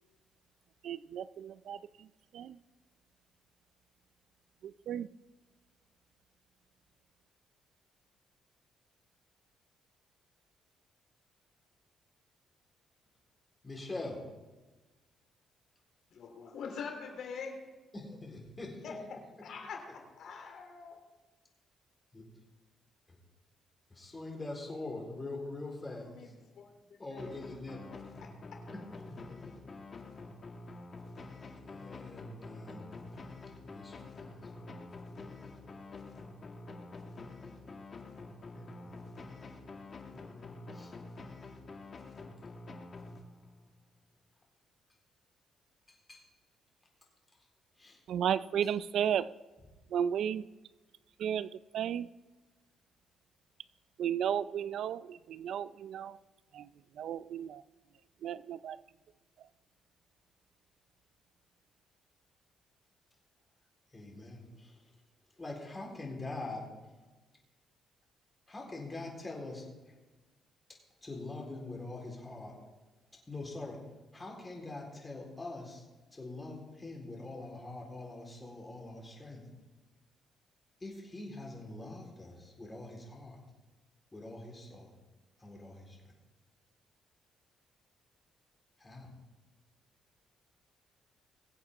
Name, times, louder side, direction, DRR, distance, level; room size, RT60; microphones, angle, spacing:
voice 1, 0.8-2.1 2.3-2.6 4.6-5.1 48.1-49.3 49.9-50.5 51.2-52.1 54.0-56.2 56.5-56.7 57.0-57.6 58.2-58.8 59.4-59.5, right 9 dB, 70° right, 16 dB, 0.4 m, -34 dB
voice 2, 13.6-14.3 17.9-19.0 22.1-22.3 23.1-23.2 23.9-26.3 27.0-28.0 28.7-29.5 31.6-35.3 38.5-39.0 40.0-40.9 45.9-46.3 47.8-48.0 48.6-48.7 63.9-64.8 65.4-66.7 68.5-69.7 71.0-72.6 73.3-73.8 74.1-79.5 80.8-83.4 84.1-84.9 85.4-86.1 88.8-89.1, left 2 dB, 20° left, -1 dB, 4.0 m, -44 dB
voice 3, 16.1-17.6 18.8-18.9 19.4-21.0 26.1-27.0 28.2-28.3, left 5 dB, 70° left, 2 dB, 3.1 m, -44 dB
sound 1, 27.2-43.7, left 3 dB, 40° left, 1.8 m, -48 dB
22.5 x 8.2 x 3.6 m, 1.2 s
cardioid pair, 90°, 0 cm